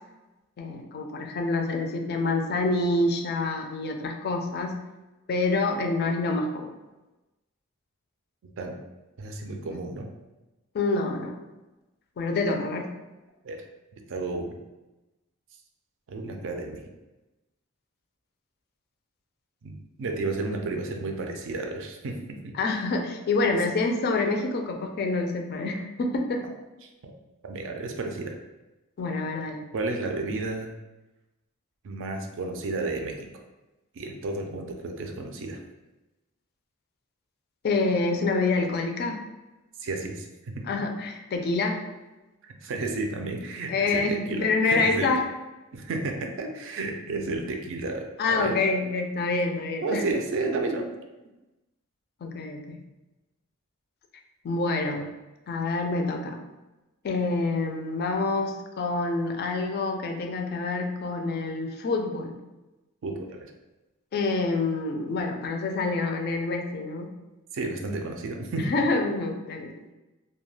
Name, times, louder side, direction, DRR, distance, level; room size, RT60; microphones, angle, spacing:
voice 1, 0.6-4.8 5.3-6.7 10.7-11.4 12.2-13.0 22.5-26.5 29.0-29.7 37.6-39.3 40.7-41.8 43.7-45.3 48.2-50.0 52.2-52.8 54.4-55.1 55.5-56.4 57.0-62.4 64.1-67.1 68.6-69.8, left 3 dB, 50° left, 3 dB, 0.3 m, -27 dB
voice 2, 9.2-10.1 13.4-13.6 14.1-14.5 16.1-16.8 19.6-22.5 26.8-27.1 27.4-28.4 29.7-30.7 31.8-33.3 33.9-35.6 39.8-40.5 42.4-45.1 45.7-48.5 49.8-50.9 63.0-63.5 67.5-68.6, right 3 dB, 60° right, 3 dB, 0.4 m, -32 dB
2.2 x 2.2 x 3.1 m, 1.1 s
head